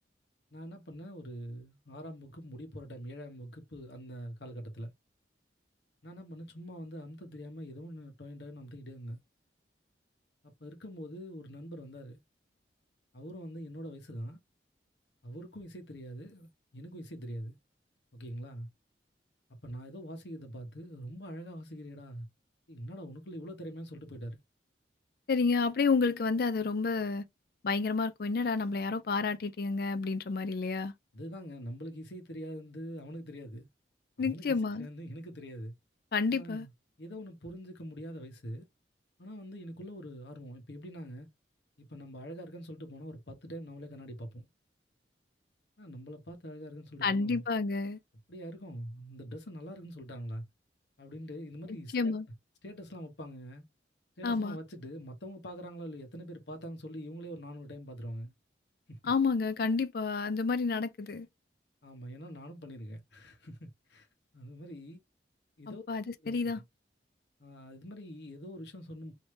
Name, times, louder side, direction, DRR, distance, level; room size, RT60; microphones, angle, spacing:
voice 1, 0.5-4.9 6.0-9.2 10.4-12.2 13.1-14.4 15.2-17.6 18.1-18.7 19.6-22.3 22.7-24.4 31.1-33.7 34.2-35.7 36.3-36.7 37.0-38.7 39.2-41.3 41.8-44.5 45.8-47.4 48.3-50.4 51.0-52.2 52.6-53.6 54.2-58.3 58.9-59.0 61.8-64.1 64.3-65.0 65.6-65.8 66.2-66.5 67.4-69.1, equal, 70° left, 1.1 m, -44 dB
voice 2, 25.3-27.2 27.6-30.9 34.2-34.9 36.1-36.7 47.0-48.0 51.7-52.3 54.2-54.6 59.0-61.3 65.7-66.6, left 4 dB, 55° left, 0.4 m, -30 dB
3.3 x 2.8 x 3.1 m
head